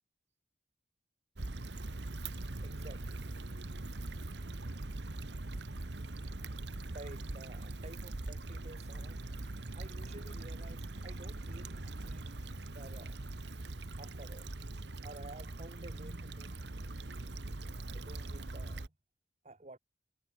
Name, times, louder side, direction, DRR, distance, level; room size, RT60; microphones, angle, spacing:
Stream / Traffic noise roadway noise / Trickle dribble, 1.4-18.9, right 2 dB, 70° right, 1.3 m, -42 dB
voice 1, 2.6-3.3 6.9-9.2 9.7-12.4 12.7-13.2 14.0-14.5 15.0-16.6 17.9-18.9 19.4-19.8, right 2 dB, 35° right, 1.5 m, -52 dB
head